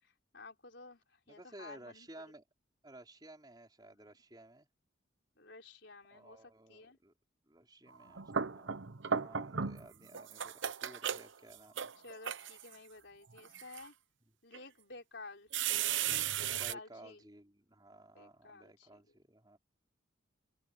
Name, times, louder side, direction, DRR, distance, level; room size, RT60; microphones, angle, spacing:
voice 1, 0.0-2.1 3.9-4.1 5.4-7.0 12.0-13.9 14.4-15.5 16.5-17.2 18.1-19.0, left 3 dB, 60° left, 4.2 m, -53 dB
voice 2, 1.3-2.4 2.8-4.7 6.1-7.1 7.5-8.8 9.1-11.9 16.5-19.6, right 1 dB, 20° right, 4.3 m, -55 dB
sound 1, 8.0-9.9 10.1-12.7 13.4-13.8 14.5-14.6 15.5-16.7, right 8 dB, 70° right, 0.9 m, -36 dB
open air
head